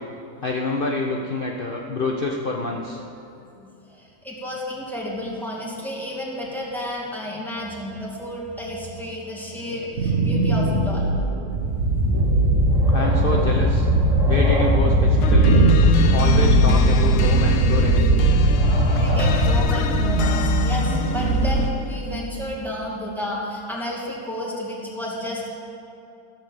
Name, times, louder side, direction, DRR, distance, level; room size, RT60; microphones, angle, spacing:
voice 1, 0.4-3.0 12.9-13.9 14.2-15.6 16.0-18.2, left 3 dB, 45° left, 0 dB, 0.8 m, -27 dB
voice 2, 4.0-11.1 19.0-25.5, left 1 dB, ahead, -4 dB, 2.1 m, -31 dB
sound 1, 9.7-22.6, right 3 dB, 55° right, 1.9 m, -23 dB
sound 2, 11.5-19.6, equal, 90° right, 3.1 m, -19 dB
sound 3, 15.2-21.9, left 7 dB, 90° left, 1.2 m, -29 dB
14.0 x 7.3 x 7.2 m, 2.7 s
omnidirectional pair, 1.6 m